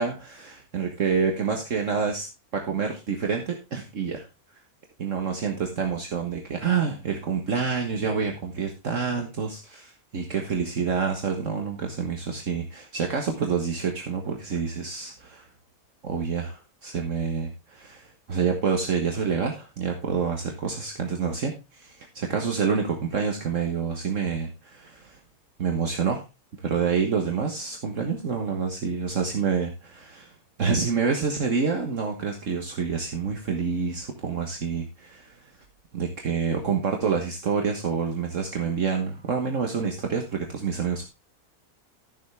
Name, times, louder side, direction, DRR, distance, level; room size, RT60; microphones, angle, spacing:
voice 1, 0.0-2.3 2.5-4.2 5.0-15.5 16.0-25.2 25.6-26.2 26.6-30.3 30.6-35.4 35.9-41.0, right 5 dB, 60° right, 3 dB, 1.7 m, -27 dB
13.0 x 7.4 x 3.5 m, 0.26 s
omnidirectional pair, 1.6 m